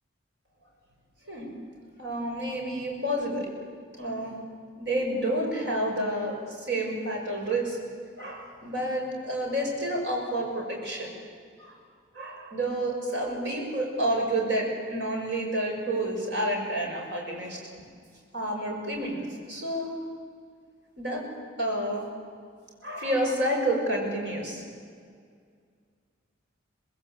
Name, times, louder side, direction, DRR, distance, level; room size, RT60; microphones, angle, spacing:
voice 1, 2.0-3.5 4.0-4.3 4.8-6.3 6.7-7.8 8.2-11.1 11.6-11.7 12.1-17.6 18.3-19.9 21.0-21.2 21.6-22.1 22.8-24.6, right 1 dB, 60° right, -1 dB, 6.6 m, -29 dB
26.0 x 19.5 x 8.4 m, 2.1 s
head